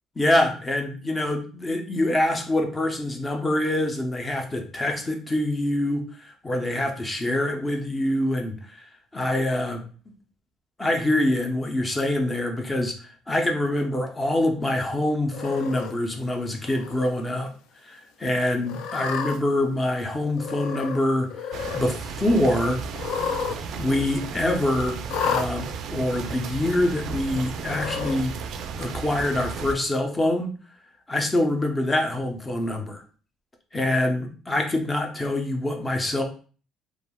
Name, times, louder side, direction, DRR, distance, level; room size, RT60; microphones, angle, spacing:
voice 1, 0.2-8.8 9.1-9.8 10.8-12.9 13.3-17.5 17.8-21.3 21.7-22.8 23.8-28.4 28.8-30.5 31.1-33.0 33.7-36.2, left 1 dB, 15° left, 4 dB, 0.5 m, -25 dB
Cat, 15.3-15.9 16.6-17.1 17.5-17.6 18.6-19.4 20.4-21.0 21.3-21.9 22.9-23.6 23.9-24.0 25.1-25.5 26.4-26.5 27.6-28.2, left 6 dB, 80° left, 0.3 m, -30 dB
sound 1, 21.5-29.7, right 6 dB, 60° right, 0.3 m, -34 dB
3.2 x 2.3 x 2.2 m, 0.39 s
cardioid pair, 140°, 0 cm